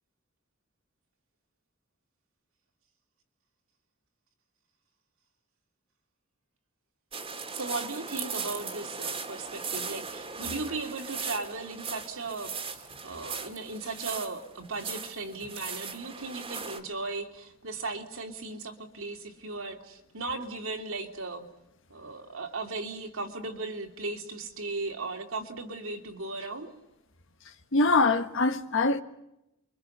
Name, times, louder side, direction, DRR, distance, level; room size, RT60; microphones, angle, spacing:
sound 1, 7.1-16.8, right 5 dB, 25° right, 2.2 m, -38 dB
voice 1, 7.5-21.5 21.9-26.7, right 3 dB, 75° right, 2.9 m, -37 dB
voice 2, 27.7-29.0, left 3 dB, 65° left, 1.5 m, -23 dB
29.5 x 23.5 x 6.7 m
head